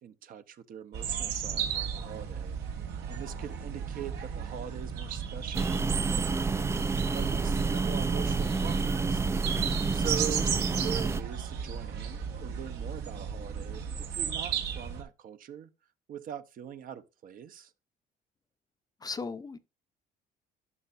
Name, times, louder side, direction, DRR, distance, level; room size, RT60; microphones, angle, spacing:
voice 1, 0.0-2.6 3.1-5.7 6.1-6.8 7.1-9.3 9.9-15.7 16.1-17.7, right 9 dB, 55° right, 0.8 m, -42 dB
sound 1, 0.9-15.0, right 7 dB, 80° right, 1.7 m, -35 dB
sound 2, 5.5-11.2, right 4 dB, 15° right, 0.3 m, -29 dB
voice 2, 9.5-9.9 19.0-19.6, left 4 dB, 20° left, 0.6 m, -37 dB
11.0 x 5.6 x 2.5 m
cardioid pair, 110°, 17 cm